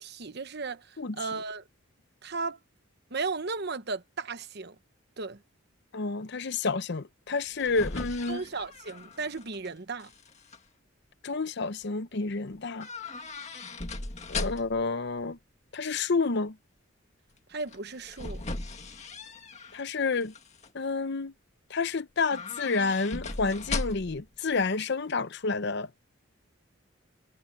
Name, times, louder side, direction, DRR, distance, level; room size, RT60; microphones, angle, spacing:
voice 1, 0.0-1.6 2.2-2.6 3.1-4.7 5.2-5.4 8.3-10.1 17.5-18.4, right 4 dB, 50° right, 1.1 m, -35 dB
voice 2, 1.0-1.3 5.9-8.4 11.2-12.9 14.3-15.4 15.7-16.6 19.7-20.3 20.7-21.3 21.7-25.9, left 4 dB, 55° left, 0.7 m, -29 dB
sound 1, 7.3-9.7 10.0-10.6 12.8-14.9 17.7-19.8 20.2-20.7 22.2-24.3 24.5-24.6, left 3 dB, 35° left, 1.9 m, -38 dB
head